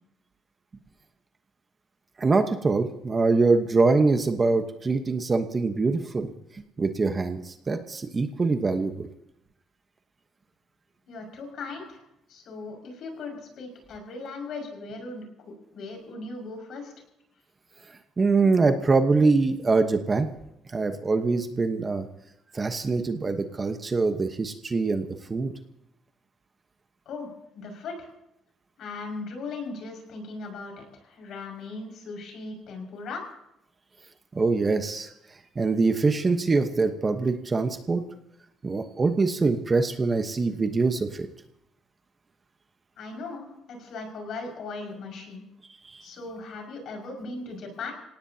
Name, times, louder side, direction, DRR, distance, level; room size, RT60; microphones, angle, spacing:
voice 1, 2.2-6.3 6.8-9.1 18.2-20.3 20.7-22.1 22.5-25.5 34.3-35.1 35.6-38.0 38.6-41.3 45.8-46.0, right 3 dB, 25° right, 7 dB, 1.1 m, -24 dB
voice 2, 11.1-16.9 27.1-27.3 27.5-28.1 28.8-33.2 43.0-45.4 46.0-47.9, left 3 dB, 60° left, 2 dB, 5.7 m, -38 dB
27.5 x 17.5 x 2.8 m, 0.84 s
cardioid pair, 150°, 0 cm